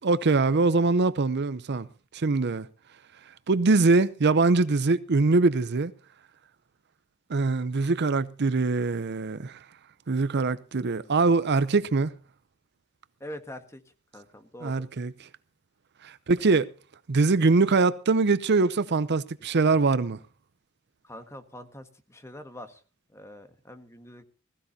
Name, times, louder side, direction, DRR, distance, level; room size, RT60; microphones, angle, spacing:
voice 1, 0.0-1.9 2.1-2.7 3.5-5.9 7.3-9.6 10.1-12.1 14.6-15.1 16.0-16.7 17.1-20.2, right 3 dB, 55° right, 0.6 m, -23 dB
voice 2, 13.2-13.8 14.1-14.8 21.0-22.8 23.1-24.2, left 1 dB, 15° left, 1.5 m, -44 dB
20.5 x 15.0 x 2.8 m
head